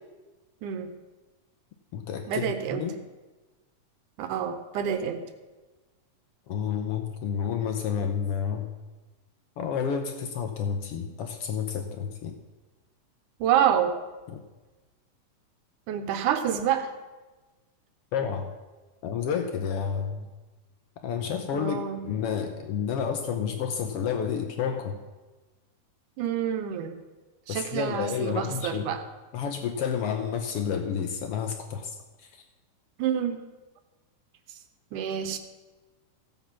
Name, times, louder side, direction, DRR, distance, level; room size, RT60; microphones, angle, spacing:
voice 1, 0.6-0.9 2.3-2.9 4.2-5.2 13.4-13.9 15.9-16.9 21.5-22.1 26.2-27.0 27.5-29.0 33.0-33.4 34.9-35.4, right 9 dB, 75° right, 9 dB, 2.3 m, -27 dB
voice 2, 1.9-2.5 2.7-3.0 6.5-8.7 9.6-12.4 14.3-14.4 18.1-18.5 19.0-20.2 21.0-25.0 27.5-28.8 29.3-31.9, left 7 dB, 80° left, 5 dB, 1.3 m, -30 dB
15.0 x 7.4 x 5.8 m, 1.2 s
omnidirectional pair, 3.7 m